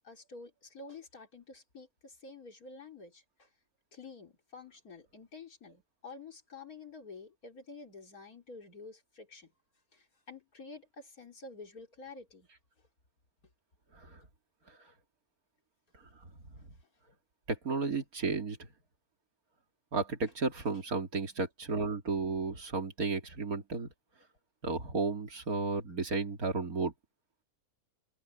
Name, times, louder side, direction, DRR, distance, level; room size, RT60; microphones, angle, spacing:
voice 1, 0.0-3.5 3.9-9.5 9.9-12.5, left 3 dB, 75° left, 4.0 m, -49 dB
voice 2, 17.5-18.6 19.9-23.9 24.6-26.9, right 3 dB, 70° right, 3.2 m, -33 dB
omnidirectional pair, 1.6 m